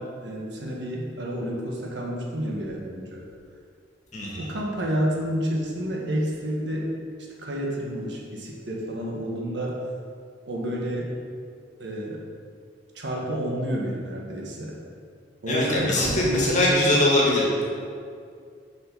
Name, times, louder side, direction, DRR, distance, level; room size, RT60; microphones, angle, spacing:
voice 1, 0.0-3.2 4.4-6.9 7.4-9.8 10.5-11.1 11.8-12.2 12.9-14.8 15.4-17.0, equal, 65° right, -2 dB, 1.5 m, -29 dB
voice 2, 4.1-4.5 15.5-17.6, left 1 dB, 40° left, -4 dB, 1.9 m, -22 dB
7.3 x 5.7 x 5.5 m, 2.3 s
head